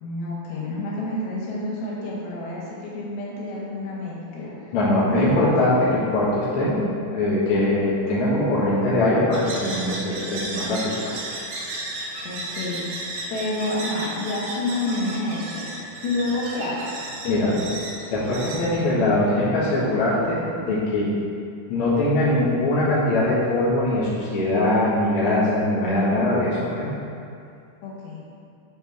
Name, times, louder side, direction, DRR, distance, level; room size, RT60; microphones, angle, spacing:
voice 1, 0.0-4.5 5.1-5.4 12.2-12.8 13.3-15.8 16.0-16.9 17.2-18.0 27.8-28.2, left 2 dB, 85° left, -5 dB, 3.1 m, -29 dB
voice 2, 4.7-6.8 7.1-11.1 17.3-17.5 18.1-21.1 21.7-26.9, left 1 dB, 50° left, -8 dB, 1.7 m, -22 dB
sound 1, 9.3-19.5, right 2 dB, 70° right, 2.5 m, -34 dB
8.9 x 4.6 x 3.5 m, 2.4 s
omnidirectional pair, 4.3 m